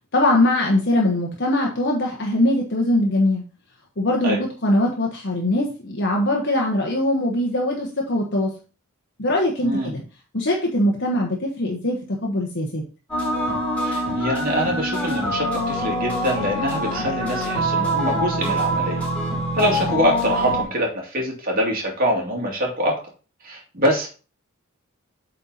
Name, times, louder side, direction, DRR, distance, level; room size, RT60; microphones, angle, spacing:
voice 1, 0.1-3.4 4.0-8.5 9.2-10.0 10.3-12.8, left 1 dB, 50° left, 0 dB, 1.2 m, -21 dB
voice 2, 9.6-10.0 13.8-19.1 19.5-23.0 23.4-24.1, equal, 40° right, -1 dB, 2.6 m, -24 dB
sound 1, 13.1-20.6, equal, 5° left, 3.2 m, -24 dB
8.4 x 4.5 x 4.0 m, 0.35 s
head